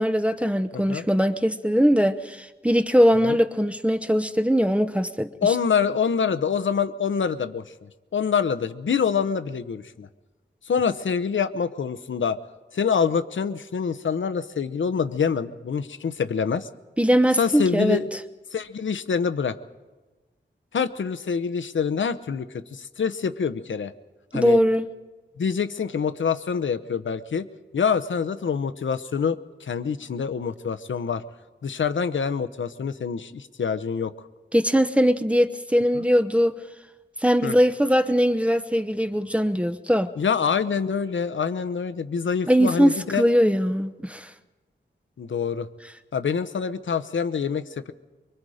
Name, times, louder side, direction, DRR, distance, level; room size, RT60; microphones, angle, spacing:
voice 1, 0.0-5.3 17.0-18.0 24.3-24.9 34.5-36.6 37.2-40.1 42.5-44.3, equal, 5° right, 10 dB, 0.7 m, -21 dB
voice 2, 0.7-1.0 3.2-3.4 5.4-10.1 10.6-12.4 12.7-16.7 17.4-18.0 18.5-19.6 20.7-23.9 24.3-24.6 25.4-27.5 27.7-31.2 31.6-34.1 35.9-36.0 37.4-37.6 40.2-43.2 45.2-45.7 46.1-47.9, left 6 dB, 85° left, 12 dB, 0.9 m, -26 dB
24.5 x 23.5 x 5.0 m, 1.2 s
wide cardioid pair, 115°, 19 cm